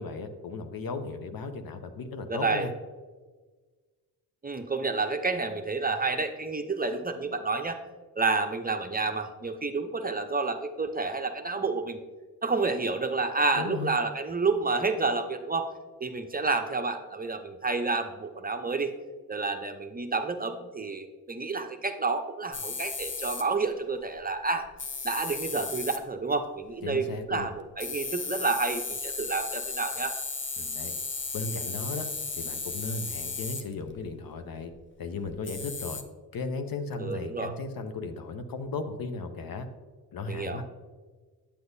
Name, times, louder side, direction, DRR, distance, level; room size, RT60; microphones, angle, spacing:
voice 1, 0.0-2.7 13.5-13.9 26.8-27.5 30.6-30.9 31.3-32.1 32.4-34.7 35.0-36.0 36.3-39.7 40.1-40.7, left 3 dB, 55° left, 8 dB, 0.9 m, -36 dB
voice 2, 2.3-2.7 4.4-7.8 8.2-12.0 12.4-15.7 16.0-18.9 19.3-24.7 25.0-30.1 37.0-37.5 40.3-40.6, right 3 dB, 20° right, 6 dB, 0.7 m, -29 dB
sound 1, 22.5-23.5 24.7-26.0 27.4-27.5 27.8-34.0 34.7-34.8 35.3-36.0, left 4 dB, 30° left, 0.7 m, -35 dB
8.5 x 7.7 x 2.7 m, 1.4 s
supercardioid pair, 50°, 42 cm